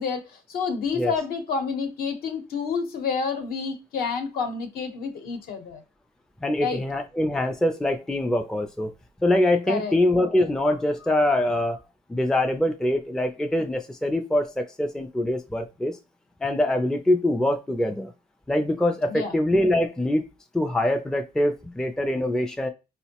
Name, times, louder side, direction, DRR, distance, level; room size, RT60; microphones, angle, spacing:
voice 1, 0.0-5.8 6.6-6.8 9.7-10.0 19.1-19.4, left 5 dB, 65° left, 0.9 m, -29 dB
voice 2, 6.4-8.9 9.2-11.8 12.1-16.0 16.4-18.1 18.5-20.2 20.5-22.7, left 1 dB, 5° left, 0.4 m, -24 dB
4.4 x 2.1 x 2.8 m
cardioid pair, 110°, 17 cm